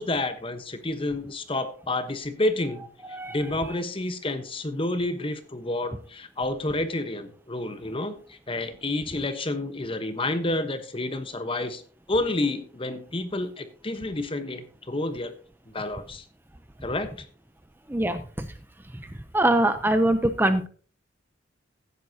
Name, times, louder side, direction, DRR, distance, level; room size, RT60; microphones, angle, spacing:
voice 1, 0.0-11.8 12.1-15.3 15.7-16.2 16.8-17.3, left 2 dB, 30° left, 10 dB, 1.1 m, -29 dB
voice 2, 17.9-18.5 19.3-20.7, right 1 dB, 10° right, 10 dB, 0.6 m, -23 dB
16.0 x 9.5 x 2.8 m, 0.40 s
head